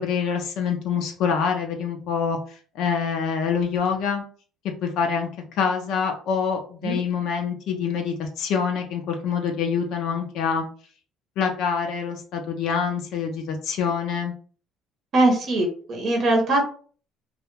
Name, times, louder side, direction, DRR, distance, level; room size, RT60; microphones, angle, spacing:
voice 1, 0.0-4.2 4.8-5.3 5.6-10.6 11.4-14.3, left 6 dB, 70° left, 3 dB, 0.4 m, -26 dB
voice 2, 15.1-16.6, right 2 dB, 50° right, 1 dB, 0.7 m, -21 dB
2.2 x 2.1 x 3.0 m, 0.42 s
cardioid pair, 105°, 0 cm